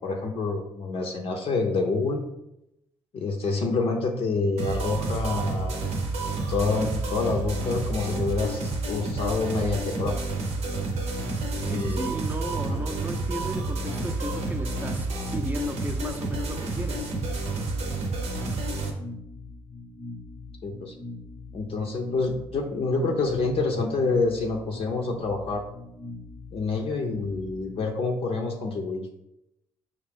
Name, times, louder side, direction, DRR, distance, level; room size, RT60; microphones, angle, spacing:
voice 1, 0.0-2.2 3.1-5.8 6.5-10.2 11.6-12.1 12.7-12.8 20.6-20.9 21.5-25.6 26.5-29.1, left 3 dB, 55° left, 0.6 m, -27 dB
sound 1, 4.6-18.9, right 2 dB, 70° right, 0.8 m, -30 dB
voice 2, 11.6-17.1, right 1 dB, 15° right, 0.6 m, -35 dB
sound 2, 18.9-27.9, left 2 dB, 25° left, 0.8 m, -42 dB
5.1 x 2.6 x 3.4 m
hypercardioid pair, 50°, 11 cm